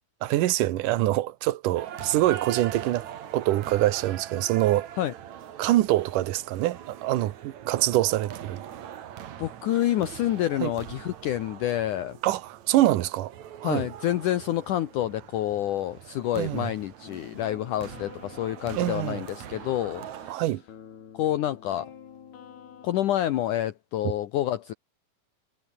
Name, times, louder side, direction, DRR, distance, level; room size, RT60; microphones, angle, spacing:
voice 1, 0.2-3.0 3.3-4.9 5.6-8.6 10.6-10.7 12.2-13.3 13.6-13.9 16.4-16.7 18.7-19.2 20.3-20.6, right 15 dB, 75° right, 1.9 m, -25 dB
sound 1, 1.7-20.3, right 10 dB, 55° right, 2.3 m, -42 dB
voice 2, 9.4-12.2 13.6-20.4 21.1-21.9 22.8-24.7, left 13 dB, 80° left, 1.8 m, -28 dB
sound 2, 17.0-23.1, left 8 dB, 60° left, 5.0 m, -48 dB
omnidirectional pair, 5.1 m